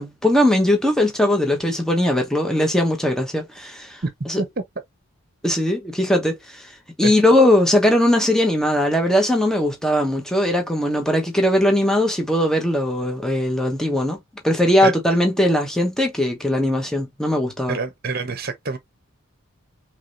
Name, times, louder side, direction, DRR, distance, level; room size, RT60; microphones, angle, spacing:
voice 1, 0.0-4.0 4.3-4.4 5.4-6.7 7.0-14.2 14.4-17.8, left 1 dB, ahead, 0.9 m, -19 dB
voice 2, 17.7-18.8, right 4 dB, 45° right, 0.9 m, -26 dB
4.8 x 3.2 x 2.5 m
head